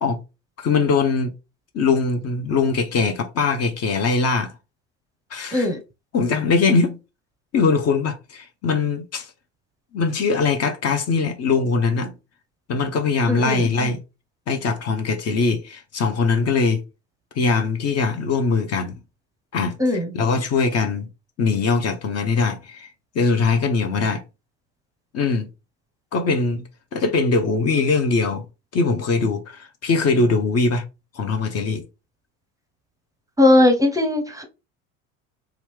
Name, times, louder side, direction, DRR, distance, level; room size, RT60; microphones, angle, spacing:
voice 1, 0.6-1.3 1.7-4.5 5.3-5.7 6.1-6.9 7.5-9.3 9.9-12.1 12.7-14.0 14.5-16.8 17.4-19.0 19.5-21.1 21.4-24.2 25.1-25.5 26.1-26.6 26.9-28.4 28.7-30.8 31.1-31.8, left 4 dB, 40° left, 0.7 m, -21 dB
voice 2, 13.3-13.6 19.8-20.1 33.4-34.4, left 2 dB, 10° right, 0.7 m, -18 dB
3.0 x 2.4 x 3.2 m
hypercardioid pair, 70°, 41 cm